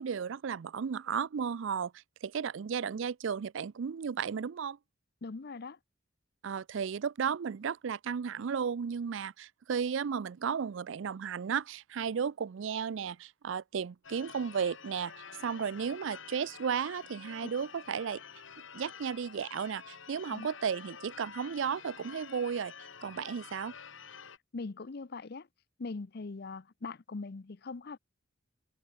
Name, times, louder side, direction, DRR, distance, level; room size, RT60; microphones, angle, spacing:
voice 1, 0.0-1.9 2.2-4.8 6.4-15.1 15.4-18.2 18.7-22.7 23.0-23.7, right 7 dB, 65° right, 0.4 m, -34 dB
voice 2, 5.2-5.8 20.3-20.5 24.5-25.5 25.8-28.0, left 3 dB, 50° left, 0.6 m, -41 dB
Church bell / Car / Alarm, 14.0-24.4, left 6 dB, 65° left, 2.1 m, -49 dB
head